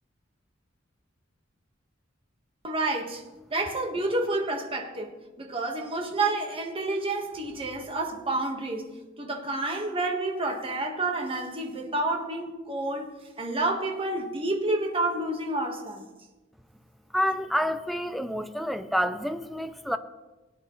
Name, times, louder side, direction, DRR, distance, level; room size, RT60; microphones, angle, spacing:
voice 1, 2.6-3.2 3.5-5.1 5.4-8.9 9.2-13.1 13.4-16.0, right 2 dB, 30° right, 2 dB, 1.5 m, -29 dB
voice 2, 17.1-20.0, equal, ahead, 10 dB, 0.5 m, -28 dB
17.5 x 9.7 x 3.2 m, 1.1 s
head